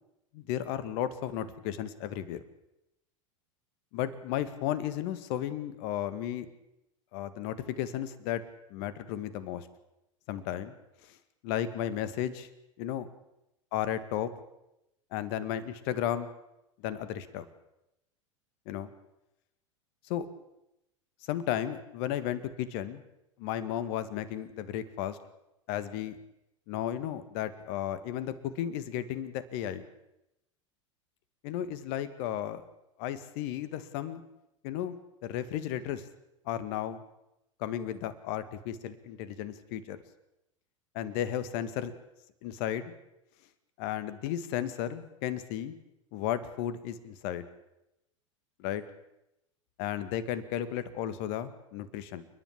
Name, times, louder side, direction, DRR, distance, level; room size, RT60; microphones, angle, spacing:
voice 1, 0.3-2.4 3.9-6.5 7.1-8.4 8.7-9.7 10.3-10.7 11.4-12.5 12.8-13.1 13.7-14.3 15.1-16.3 16.8-17.5 18.7-18.9 20.1-20.3 21.3-23.0 23.4-25.2 25.7-26.2 26.7-29.9 31.4-32.6 33.0-34.2 34.6-34.9 35.2-36.0 36.5-37.0 37.6-40.0 40.9-41.9 42.4-42.9 43.8-45.7 46.1-47.5 48.6-48.8 49.8-52.3, left 11 dB, 55° left, 13 dB, 1.9 m, -34 dB
29.0 x 10.5 x 8.4 m, 0.87 s
hypercardioid pair, 90°, 16 cm